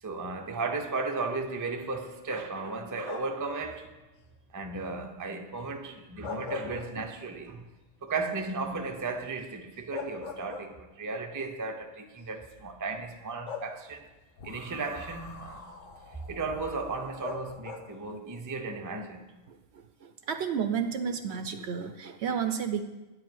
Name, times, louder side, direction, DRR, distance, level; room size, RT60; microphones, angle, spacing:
voice 1, 0.0-3.9 4.5-7.7 8.0-14.1 14.4-15.7 16.3-19.2, right 3 dB, 25° right, 0.4 m, -35 dB
sound 1, 3.0-3.5 6.0-7.4 7.8-7.9 9.4-9.5 9.9-11.1 12.1-12.2 13.5-14.2 17.2-18.1, left 6 dB, 65° left, 1.2 m, -40 dB
sound 2, 14.4-17.6, left 3 dB, 45° left, 1.0 m, -48 dB
voice 2, 19.5-22.8, right 7 dB, 65° right, 0.8 m, -32 dB
9.3 x 4.9 x 7.7 m
omnidirectional pair, 1.4 m